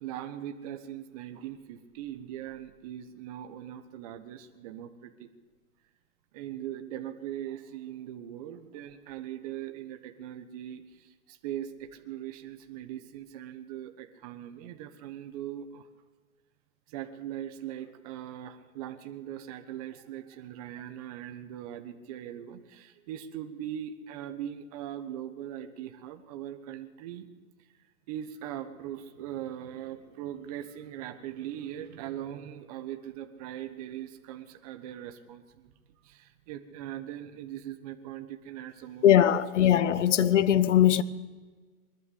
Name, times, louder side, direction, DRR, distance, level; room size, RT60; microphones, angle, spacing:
voice 1, 0.0-5.3 6.3-15.9 16.9-27.3 28.1-35.7 36.0-39.4, right 11 dB, 25° right, 1.2 m, -40 dB
voice 2, 39.0-41.0, left 10 dB, 50° left, 1.2 m, -21 dB
22.0 x 20.5 x 8.4 m
hypercardioid pair, 160°, 45 cm